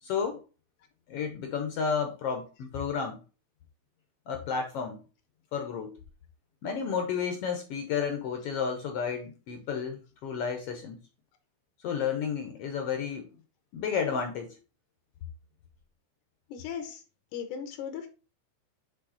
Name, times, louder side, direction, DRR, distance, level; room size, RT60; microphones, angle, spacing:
voice 1, 0.0-0.4 1.1-3.2 4.3-5.0 5.5-6.0 6.6-11.0 11.8-13.3 13.7-14.6, left 6 dB, 70° left, 5 dB, 1.5 m, -32 dB
voice 2, 16.5-17.0 17.3-18.1, left 8 dB, 85° left, 7 dB, 2.4 m, -37 dB
7.5 x 3.6 x 3.8 m, 0.31 s
omnidirectional pair, 3.5 m